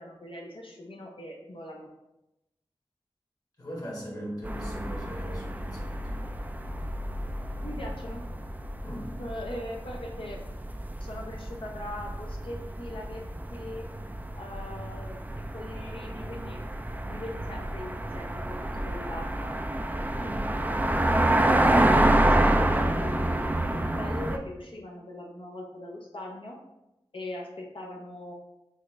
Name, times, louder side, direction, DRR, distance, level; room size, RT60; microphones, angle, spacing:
voice 1, 0.0-1.9 7.6-8.2 9.1-10.4 11.0-13.2 13.5-13.9 14.4-15.2 15.5-16.6 17.0-19.5 21.6-26.6 27.1-28.3, left 1 dB, 60° left, -1 dB, 0.6 m, -40 dB
voice 2, 3.6-6.0 8.8-9.1 20.1-20.6, equal, 40° left, -3 dB, 1.3 m, -39 dB
sound 1, 4.4-24.4, right 1 dB, 15° right, 0.3 m, -28 dB
4.1 x 2.4 x 3.2 m, 0.92 s
wide cardioid pair, 45°, 10 cm